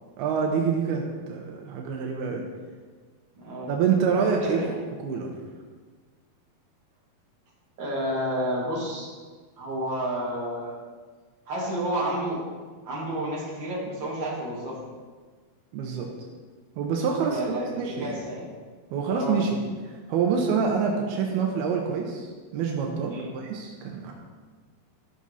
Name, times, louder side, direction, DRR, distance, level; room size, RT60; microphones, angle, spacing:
voice 1, 0.2-2.4 3.7-4.6 5.0-5.4 15.7-16.1 16.8-18.2 18.9-19.6 19.8-24.1, right 6 dB, 80° right, 1 dB, 2.7 m, -26 dB
voice 2, 3.4-3.8 4.4-4.8 7.8-9.1 9.6-10.8 11.5-12.4 12.8-14.8 17.3-18.5 19.1-19.5 23.1-23.3, right 1 dB, 35° right, -6 dB, 2.7 m, -30 dB
13.0 x 6.2 x 4.1 m, 1.5 s
omnidirectional pair, 4.6 m